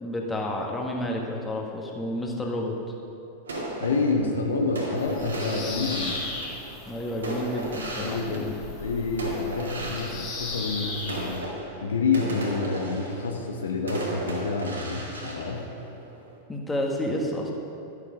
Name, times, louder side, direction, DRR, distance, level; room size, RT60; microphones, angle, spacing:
voice 1, 0.0-2.8 6.8-8.5 16.5-17.5, left 1 dB, 10° left, 0 dB, 1.6 m, -30 dB
sound 1, 3.5-8.8 9.2-16.3, right 1 dB, 70° right, 2.3 m, -36 dB
voice 2, 3.8-6.2 8.0-11.5 11.8-15.7, left 4 dB, 70° left, 2 dB, 1.0 m, -28 dB
Bird vocalization bird call bird song, 5.0-11.4, left 3 dB, 35° left, 2.5 m, -37 dB
12.5 x 8.5 x 5.1 m, 2.7 s
figure-of-eight pair, 90°, 0 cm